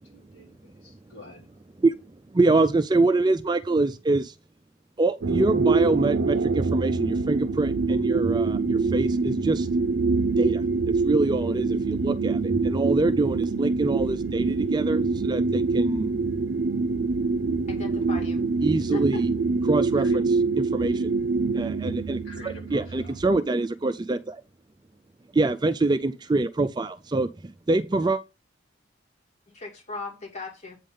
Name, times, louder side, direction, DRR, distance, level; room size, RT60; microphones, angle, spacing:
voice 1, 0.0-1.6 19.9-20.2 22.1-23.2, left 1 dB, 75° left, 3.8 m, -46 dB
voice 2, 2.3-4.3 5.0-9.7 10.4-10.6 11.0-16.1 18.6-19.3 19.6-20.2 20.7-21.1 21.5-22.2 22.7-24.4 25.3-28.2, right 2 dB, 20° right, 0.4 m, -25 dB
sound 1, 5.2-23.4, right 4 dB, 80° right, 0.6 m, -25 dB
voice 3, 17.7-18.4 18.9-19.2 29.5-30.8, left 3 dB, 35° left, 2.3 m, -37 dB
8.5 x 3.6 x 5.4 m
head